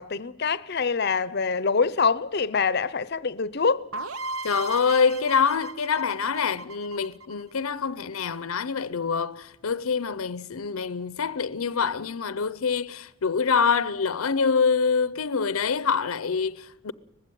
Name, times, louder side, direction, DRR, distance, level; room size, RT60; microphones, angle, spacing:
voice 1, 0.0-3.9, left 5 dB, 50° left, 0.6 m, -25 dB
sound 1, 3.9-7.7, right 2 dB, 85° right, 0.9 m, -37 dB
voice 2, 4.4-16.9, left 5 dB, 85° left, 0.7 m, -25 dB
20.0 x 15.5 x 9.2 m
head